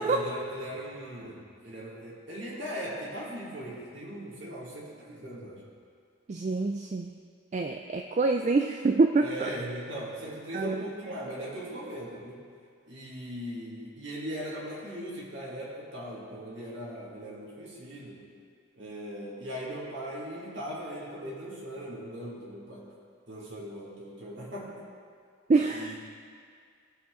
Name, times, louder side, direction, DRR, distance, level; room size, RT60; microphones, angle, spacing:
voice 1, 0.0-5.6 9.2-12.4 12.9-18.2 18.8-22.9 23.3-24.8 25.7-26.0, equal, 60° right, -5 dB, 2.0 m, -39 dB
voice 2, 6.3-7.1 7.5-9.5 10.5-10.8 25.5-25.9, right 3 dB, 35° right, 4 dB, 0.3 m, -26 dB
16.5 x 6.9 x 3.7 m, 2.2 s
head